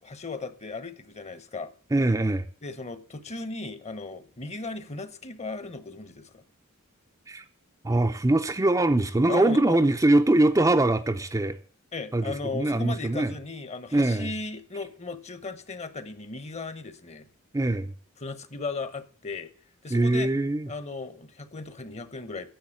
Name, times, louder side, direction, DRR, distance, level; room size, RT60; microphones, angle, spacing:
voice 1, 0.0-1.7 2.6-6.4 9.3-9.8 11.9-17.3 18.2-19.5 19.8-20.3 20.7-22.5, left 3 dB, 30° left, 1.0 m, -36 dB
voice 2, 1.9-2.4 7.3-7.4 7.8-11.6 12.1-13.3 13.9-14.3 17.5-17.9 19.9-20.7, right 2 dB, 15° right, 0.5 m, -22 dB
10.5 x 7.4 x 7.2 m
head